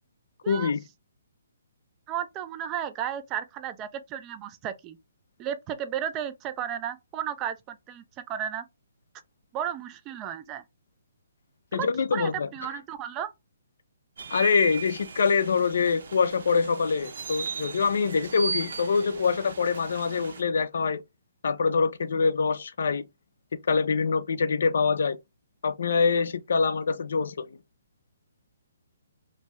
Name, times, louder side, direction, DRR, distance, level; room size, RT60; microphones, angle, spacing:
voice 1, 0.5-0.8 11.7-12.5 14.3-21.0 21.4-23.0 23.7-25.2 25.6-27.5, left 5 dB, 70° left, 0.4 m, -25 dB
voice 2, 2.1-5.0 5.4-8.7 9.5-10.6 11.7-13.3, right 9 dB, 20° right, 0.3 m, -34 dB
sound 1, 14.2-20.4, right 5 dB, 65° right, 0.7 m, -37 dB
2.6 x 2.2 x 3.0 m
hypercardioid pair, 160°, 0 cm